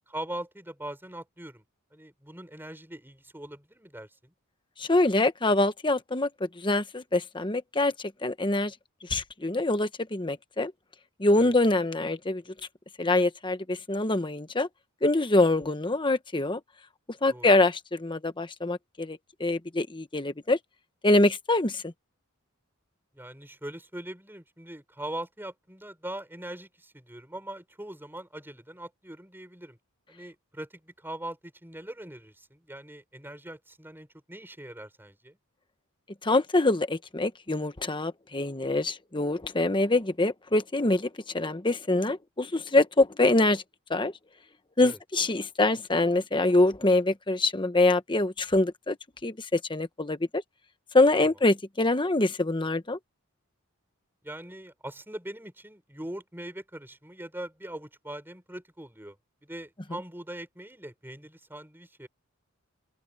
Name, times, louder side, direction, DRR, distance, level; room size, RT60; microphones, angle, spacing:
voice 1, 0.1-1.6 1.9-4.3 11.3-11.6 17.3-17.5 23.1-29.8 30.1-35.4 44.8-45.0 54.2-59.2 59.4-62.1, right 1 dB, 10° right, 6.2 m, -41 dB
voice 2, 4.8-7.9 8.2-8.7 9.1-10.7 11.2-12.4 13.0-14.7 15.0-16.6 17.2-20.6 21.0-21.9 36.2-41.1 41.3-43.6 43.9-44.1 44.8-49.0 49.2-50.4 50.9-53.0, left 2 dB, 20° left, 1.1 m, -25 dB
open air
head